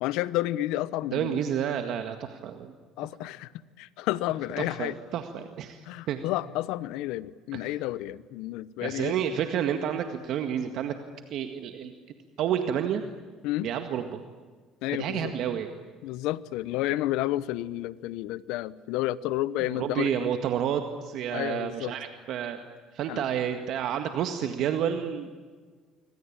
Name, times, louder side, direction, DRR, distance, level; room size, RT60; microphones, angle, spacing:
voice 1, 0.0-1.4 3.0-3.5 3.8-5.0 5.9-9.1 13.4-13.7 14.8-15.3 16.0-20.1 21.3-21.9 23.1-23.2, left 16 dB, 80° left, 18 dB, 1.0 m, -31 dB
voice 2, 1.1-2.7 4.6-6.2 7.5-7.7 8.8-11.0 11.3-11.9 12.4-13.0 13.6-14.2 15.0-15.7 19.6-22.6 22.9-25.3, right 9 dB, 60° right, 7 dB, 1.9 m, -30 dB
26.5 x 25.0 x 8.9 m, 1.5 s
cardioid pair, 125°, 0 cm